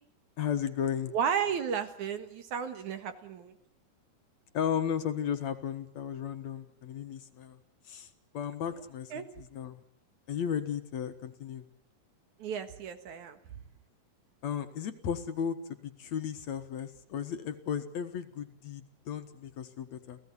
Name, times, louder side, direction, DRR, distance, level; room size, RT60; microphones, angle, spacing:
voice 1, 0.4-1.1 4.5-7.6 7.8-9.8 10.3-11.7 14.4-20.2, left 8 dB, 60° left, 8 dB, 2.5 m, -35 dB
voice 2, 1.1-3.5 8.7-8.8 9.1-9.3 12.4-13.4, right 7 dB, 65° right, 9 dB, 3.0 m, -33 dB
29.5 x 16.5 x 9.8 m, 0.72 s
omnidirectional pair, 3.8 m